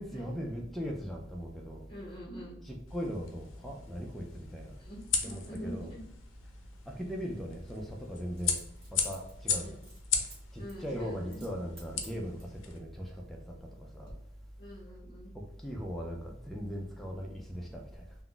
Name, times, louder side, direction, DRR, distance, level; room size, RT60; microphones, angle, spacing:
voice 1, 0.0-1.9 2.6-4.7 5.2-5.9 6.9-8.6 8.9-9.8 10.5-14.1 15.3-18.1, equal, ahead, -1 dB, 0.3 m, -39 dB
voice 2, 1.9-2.6 4.4-4.5 4.8-6.0 9.6-9.8 10.6-11.5 14.6-15.3, equal, 30° left, -7 dB, 0.7 m, -44 dB
sound 1, 2.9-12.8, left 6 dB, 85° left, 0.4 m, -37 dB
Coin (dropping), 8.4-10.4 10.7-10.9 11.3-11.5 11.8-12.6 13.2-13.7 14.0-14.1, right 2 dB, 30° right, 0.9 m, -55 dB
2.3 x 2.0 x 3.7 m, 0.75 s
head